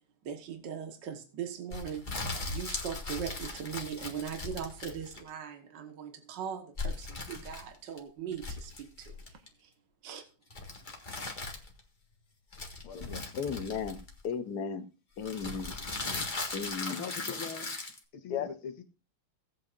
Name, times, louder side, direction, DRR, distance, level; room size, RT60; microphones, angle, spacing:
voice 1, 0.2-2.2 2.5-9.7 10.0-10.3, right 8 dB, 60° right, 2.0 m, -40 dB
sound 1, 1.7-5.4 6.8-8.0 8.3-9.5 10.5-11.8 12.5-14.3 15.2-18.0, left 3 dB, 25° left, 1.6 m, -38 dB
voice 2, 12.8-13.4 16.0-16.3 16.9-17.7 18.1-18.8, left 6 dB, 90° left, 2.2 m, -42 dB
voice 3, 13.4-14.0 14.2-14.8 15.2-15.7 16.5-17.0 18.3-18.5, left 6 dB, 60° left, 1.4 m, -34 dB
17.0 x 8.3 x 2.6 m
omnidirectional pair, 2.3 m